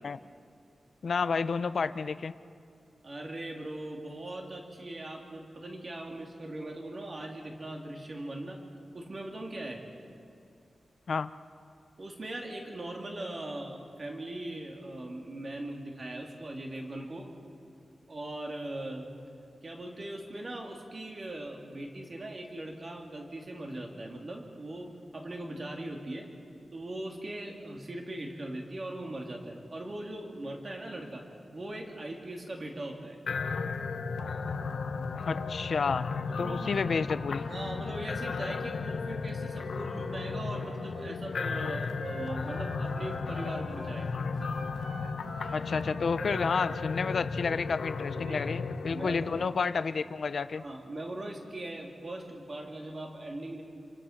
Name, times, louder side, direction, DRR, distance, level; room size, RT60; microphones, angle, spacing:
voice 1, 1.0-2.3 11.1-11.3 35.3-36.1 36.4-37.5 45.5-50.6, left 5 dB, 60° left, 12 dB, 0.7 m, -30 dB
voice 2, 3.0-8.6 8.9-9.8 12.0-17.3 18.1-19.1 19.6-26.3 26.7-31.2 31.5-33.2 36.3-36.9 37.5-44.1 46.4-46.5 48.1-48.5 48.9-49.6 50.5-53.6, right 1 dB, 35° right, 1 dB, 3.1 m, -40 dB
sound 1, 33.3-49.5, left 4 dB, 85° left, 1.1 m, -35 dB
Wind instrument woodwind instrument, 40.9-44.0 44.3-47.7, right 1 dB, 50° right, 2.7 m, -46 dB
29.0 x 24.5 x 6.0 m, 2.4 s
wide cardioid pair, 165°, 0 cm